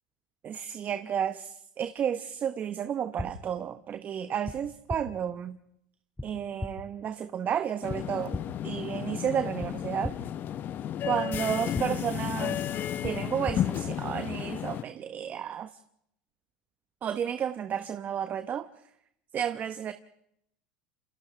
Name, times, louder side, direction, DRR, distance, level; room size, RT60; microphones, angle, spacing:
voice 1, 0.4-5.6 6.2-8.4 8.6-10.1 11.0-12.7 13.0-15.7 17.0-18.7 19.3-19.9, right 9 dB, 40° right, 10 dB, 1.1 m, -32 dB
sound 1, 3.2-3.3 4.4-4.6 4.9-5.0 6.2-6.3 6.6-6.7 7.9-8.0 8.3-8.4 9.6-9.7 10.0-10.1 11.3-11.4 11.7-11.9 13.0-13.1 13.5-13.6, left 2 dB, 10° left, 2.6 m, -34 dB
sound 2, 7.8-14.8, left 10 dB, 45° left, 1.0 m, -33 dB
29.0 x 26.5 x 3.4 m, 0.74 s
hypercardioid pair, 90°, 5 cm